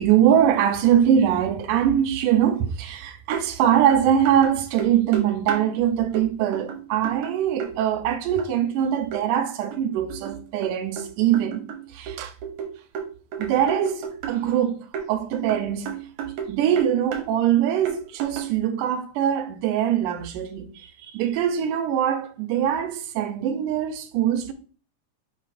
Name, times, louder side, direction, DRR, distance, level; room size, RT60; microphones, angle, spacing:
voice 1, 0.0-12.3 13.4-15.9 16.5-24.5, right 10 dB, 85° right, 2.2 m, -22 dB
sound 1, 3.3-3.5 3.7-5.7 6.1-6.3 6.5-7.7 8.4-8.5 9.1-9.2 9.7-11.1 11.3-14.4 14.9-16.5 16.8-17.3 17.9-18.6, right 7 dB, 70° right, 2.3 m, -33 dB
5.8 x 3.4 x 4.9 m
omnidirectional pair, 3.7 m